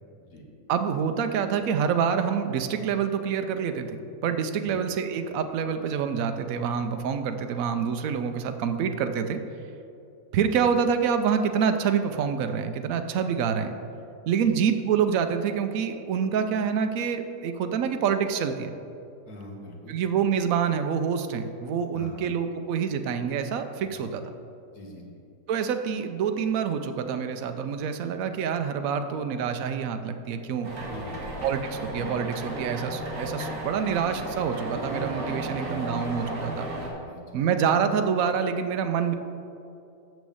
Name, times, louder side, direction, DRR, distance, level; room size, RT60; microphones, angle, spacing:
voice 1, 0.7-9.4 10.3-13.8 14.3-18.7 19.9-24.2 25.5-30.7 31.4-36.7 37.3-39.1, right 7 dB, 65° right, 8 dB, 0.9 m, -27 dB
voice 2, 19.3-20.0 21.9-22.3 23.9-24.1 24.7-25.0 30.8-31.4 35.5-35.6 36.7-37.4, left 1 dB, 60° left, -2 dB, 1.9 m, -44 dB
sound 1, 30.6-36.9, right 1 dB, 50° right, 1.9 m, -34 dB
6.4 x 6.1 x 7.1 m, 2.6 s
omnidirectional pair, 1.9 m